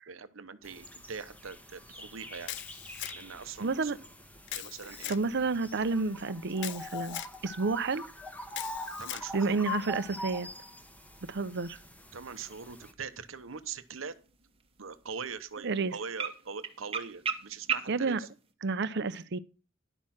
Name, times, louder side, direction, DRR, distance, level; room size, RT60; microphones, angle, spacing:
voice 1, 0.1-2.5 3.1-3.9 4.5-5.1 9.0-9.6 12.1-14.1 14.8-18.3, right 5 dB, 80° right, 0.9 m, -42 dB
sound 1, 0.6-12.9, left 2 dB, 10° left, 1.2 m, -44 dB
Camera, 2.5-3.4 4.5-5.2 6.6-7.3 8.5-9.3, left 14 dB, 60° left, 0.5 m, -40 dB
voice 2, 3.6-4.0 4.9-8.0 9.3-10.5 11.3-11.8 15.6-16.0 17.9-18.2 18.6-19.4, right 4 dB, 60° right, 0.7 m, -30 dB
sound 2, 10.0-18.5, right 6 dB, 30° right, 1.2 m, -41 dB
11.0 x 6.5 x 5.8 m
head